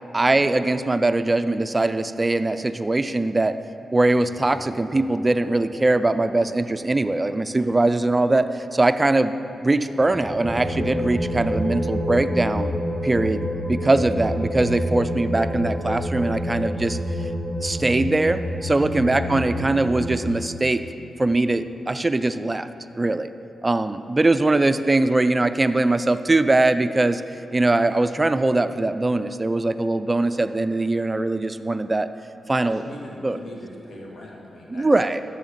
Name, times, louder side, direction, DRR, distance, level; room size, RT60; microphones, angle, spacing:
voice 1, 0.1-3.6 3.9-9.3 9.6-12.7 13.0-17.0 17.6-20.8 21.2-22.7 23.0-23.3 23.6-27.2 27.5-32.1 32.5-32.8 33.2-33.4 34.7-35.2, right 2 dB, 30° right, 11 dB, 0.4 m, -21 dB
sound 1, 4.2-7.4 9.8-20.3, equal, 10° right, 2.3 m, -29 dB
voice 2, 7.6-7.9 19.1-19.4 32.6-34.9, left 1 dB, 60° left, -2 dB, 1.8 m, -41 dB
7.0 x 6.2 x 7.4 m, 2.8 s
supercardioid pair, 50°, 0 cm